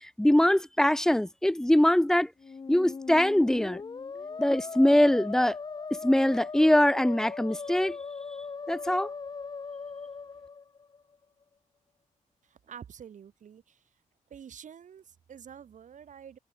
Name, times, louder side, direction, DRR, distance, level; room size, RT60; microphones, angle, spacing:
voice 1, 0.2-2.3 2.7-3.8 4.4-5.5 6.0-8.0 8.7-9.1, left 1 dB, 5° left, 0.4 m, -22 dB
Musical instrument, 2.4-11.2, left 5 dB, 30° left, 1.0 m, -39 dB
voice 2, 12.4-13.8 14.3-16.4, right 8 dB, 70° right, 4.3 m, -48 dB
wide cardioid pair, 130°, 13 cm